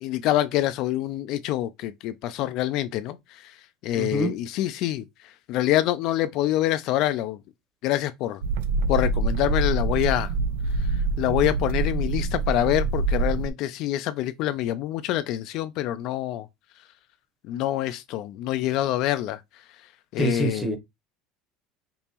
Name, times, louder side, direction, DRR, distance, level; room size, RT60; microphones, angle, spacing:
voice 1, 0.0-3.5 3.8-5.0 5.5-7.4 7.8-8.4 8.9-10.3 10.9-16.5 17.5-19.4 20.1-20.7, left 14 dB, 60° left, 0.3 m, -26 dB
voice 2, 4.0-4.3 20.2-20.8, right 2 dB, 5° right, 0.8 m, -26 dB
sound 1, 8.4-13.5, right 3 dB, 90° right, 0.5 m, -25 dB
5.2 x 2.0 x 2.9 m
supercardioid pair, 130°, 0 cm